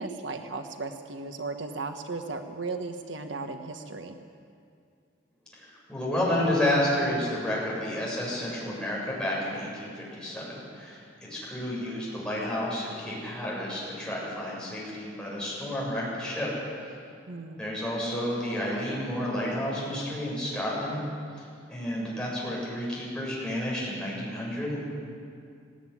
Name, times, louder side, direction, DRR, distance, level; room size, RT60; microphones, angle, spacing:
voice 1, 0.0-4.2 17.3-17.6, right 3 dB, 70° right, 6 dB, 1.3 m, -36 dB
voice 2, 5.5-11.0 11.3-16.5 17.6-21.0 21.4-24.8, left 1 dB, 5° left, -6 dB, 7.8 m, -30 dB
19.0 x 17.5 x 10.0 m, 2.3 s
head